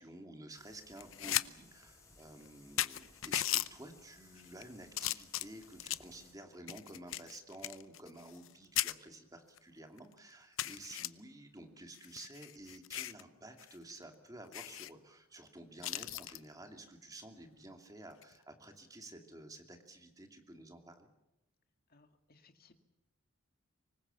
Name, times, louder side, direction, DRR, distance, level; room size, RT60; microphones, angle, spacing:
voice 1, 0.0-21.1, right 1 dB, 15° right, 5 dB, 2.8 m, -52 dB
sound 1, 0.5-6.3, left 3 dB, 15° left, 6.7 m, -62 dB
sound 2, 1.0-1.5 1.8-1.9 2.5-2.6 2.8-3.7 4.4-4.6 5.0-6.1 6.7-8.5 8.8-8.9 9.6-9.7 10.0-10.1 10.6-11.1 11.9-13.2 13.6-13.7 14.0-14.1 14.5-14.9 15.8-16.4 18.1-18.4, left 13 dB, 70° left, 0.7 m, -37 dB
voice 2, 21.9-22.7, left 4 dB, 45° left, 7 dB, 2.2 m, -65 dB
25.5 x 20.5 x 7.2 m, 0.96 s
head